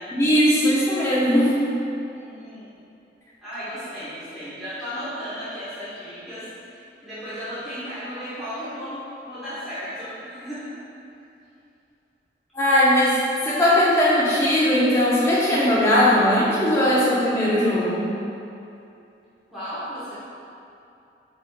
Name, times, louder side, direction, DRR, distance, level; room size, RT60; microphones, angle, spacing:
voice 1, 0.1-1.6 12.5-13.1 13.4-18.1, left 1 dB, 15° left, -8 dB, 0.7 m, -19 dB
voice 2, 2.1-2.7 3.4-10.7 19.5-20.2, equal, ahead, -16 dB, 1.1 m, -35 dB
4.9 x 4.0 x 2.2 m, 2.7 s
head